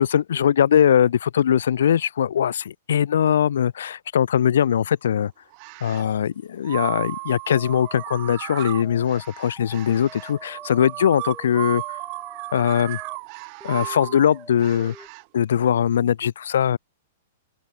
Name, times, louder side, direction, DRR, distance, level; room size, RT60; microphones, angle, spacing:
voice 1, 0.0-5.3 5.8-12.0 12.5-13.0 13.6-14.9 15.3-16.8, left 9 dB, 75° left, 0.3 m, -21 dB
sound 1, 5.5-6.1 6.6-15.2, right 40 dB or more, 45° right, 0.7 m, -35 dB
sound 2, 7.5-13.2 13.6-15.1, right 1 dB, 5° right, 4.9 m, -46 dB
open air
hypercardioid pair, 120°, 0 cm